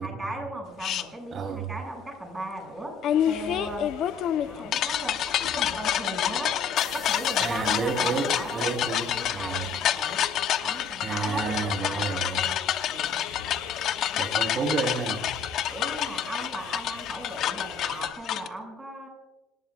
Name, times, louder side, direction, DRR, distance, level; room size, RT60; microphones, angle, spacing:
voice 1, 0.0-3.0 3.2-3.9 4.4-6.6 6.9-10.2 10.6-12.6 12.9-13.2 15.7-19.1, right 1 dB, 10° right, 1 dB, 6.8 m, -37 dB
sound 1, 0.8-1.0 3.0-18.5, left 10 dB, 55° left, 1.0 m, -28 dB
voice 2, 1.3-1.7 7.4-9.7 11.0-12.5 13.5-13.6 14.2-15.3, right 4 dB, 40° right, 4 dB, 4.1 m, -31 dB
sound 2, 3.1-18.1, left 8 dB, 75° left, 5.2 m, -41 dB
sound 3, 6.8-10.4, left 1 dB, 10° left, 7.9 m, -49 dB
27.5 x 18.5 x 2.5 m, 1.1 s
cardioid pair, 115°, 0 cm